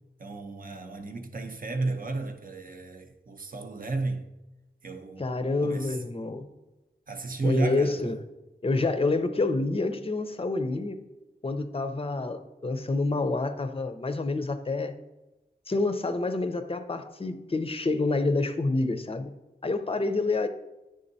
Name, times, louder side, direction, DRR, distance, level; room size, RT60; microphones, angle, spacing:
voice 1, 0.2-4.3 4.8-5.3 5.6-6.0 7.1-8.2, right 3 dB, 50° right, 0.7 m, -33 dB
voice 2, 5.2-6.5 7.4-8.2 8.6-11.0 11.4-14.9 15.7-19.3 19.6-20.5, left 3 dB, 30° left, 0.5 m, -28 dB
9.8 x 3.7 x 2.7 m
wide cardioid pair, 75°, 19 cm